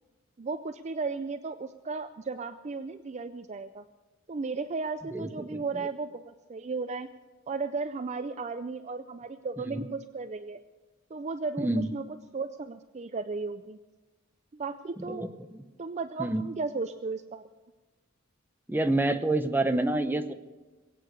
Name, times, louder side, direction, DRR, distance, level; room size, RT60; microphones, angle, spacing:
voice 1, 0.4-3.8 4.3-7.1 7.5-10.6 11.1-12.0 12.3-13.8 14.5-15.3 15.8-17.4, right 4 dB, 30° right, 11 dB, 0.4 m, -35 dB
voice 2, 5.1-5.6 9.7-9.9 11.6-11.9 15.1-15.6 16.2-16.5 18.7-20.3, right 2 dB, 10° right, 7 dB, 0.8 m, -28 dB
21.5 x 8.6 x 6.6 m, 1.2 s
head